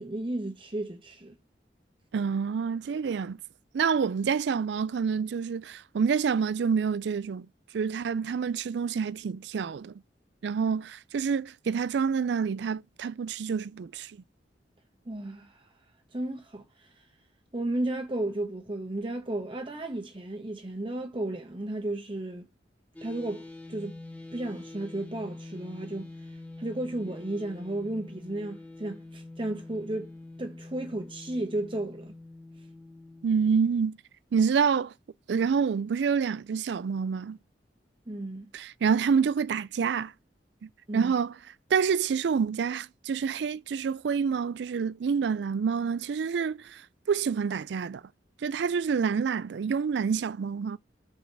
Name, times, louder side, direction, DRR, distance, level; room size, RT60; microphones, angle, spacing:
voice 1, 0.0-1.3 15.1-15.7 16.1-16.9 17.5-22.4 23.0-24.0 24.3-26.1 26.6-30.1 30.4-32.1 38.1-38.5 40.9-41.1, right 1 dB, 30° right, 1.1 m, -34 dB
voice 2, 2.1-3.4 3.7-7.5 7.7-9.9 10.4-14.1 33.2-34.0 34.3-34.9 35.3-37.4 38.5-40.1 40.6-41.4 41.7-46.8 47.1-48.0 48.4-50.8, right 6 dB, 70° right, 0.4 m, -27 dB
sound 1, 22.9-33.3, left 2 dB, 10° left, 1.6 m, -45 dB
6.4 x 4.7 x 6.7 m
head